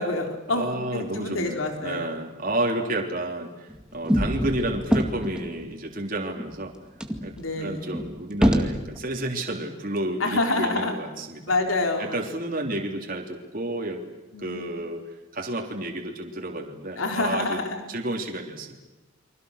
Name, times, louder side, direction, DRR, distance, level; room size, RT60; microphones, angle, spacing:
voice 1, 0.0-2.1 7.4-7.9 10.2-11.0 11.5-12.2 14.3-14.7 17.0-17.9, left 2 dB, 85° left, 4 dB, 3.9 m, -27 dB
voice 2, 0.5-6.7 7.2-7.3 7.6-11.4 12.0-14.0 14.4-17.6 17.9-18.8, right 1 dB, 45° right, 1 dB, 3.4 m, -31 dB
sound 1, 3.7-5.6 6.1-6.2 6.4-6.5 7.0-9.0, equal, 5° right, 2.1 m, -25 dB
30.0 x 24.5 x 6.6 m, 1.1 s
head